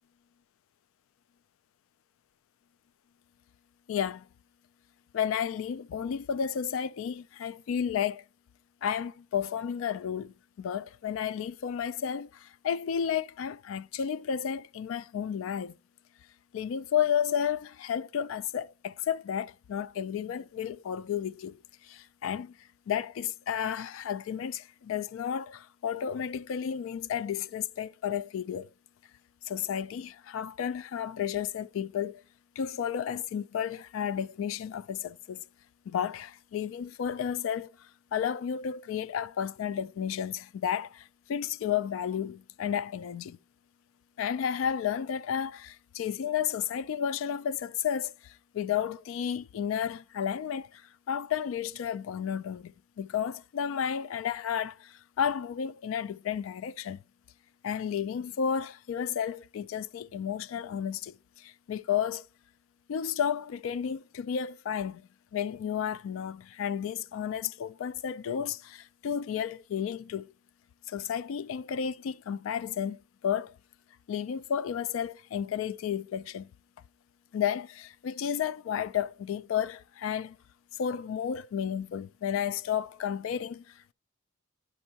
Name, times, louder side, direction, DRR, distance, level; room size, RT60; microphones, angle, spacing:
voice 1, 3.9-4.3 5.1-8.2 8.8-15.8 16.5-22.6 22.9-28.7 29.4-32.2 32.6-35.4 35.9-43.4 44.2-50.8 51.1-57.0 57.6-62.2 62.9-65.0 65.3-70.3 70.9-73.6 74.1-76.5 77.3-80.4 80.8-83.9, left 8 dB, 75° left, 0.3 m, -32 dB
9.5 x 5.3 x 2.8 m
head